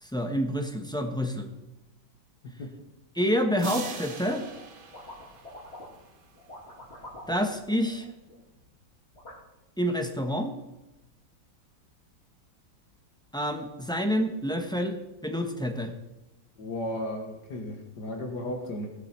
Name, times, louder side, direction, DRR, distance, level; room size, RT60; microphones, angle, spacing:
voice 1, 0.0-1.5 3.1-4.5 7.3-8.1 9.8-10.5 13.3-15.0 15.2-15.9, equal, 5° left, 4 dB, 0.7 m, -28 dB
sound 1, 3.6-6.1, right 2 dB, 35° right, 0.9 m, -39 dB
sound 2, 4.4-4.7 4.9-6.1 6.3-8.6 9.1-9.3, left 1 dB, 35° left, 3.1 m, -46 dB
voice 2, 16.6-18.9, left 1 dB, 60° left, 3 dB, 2.0 m, -34 dB
18.0 x 7.7 x 4.4 m, 0.96 s
omnidirectional pair, 2.0 m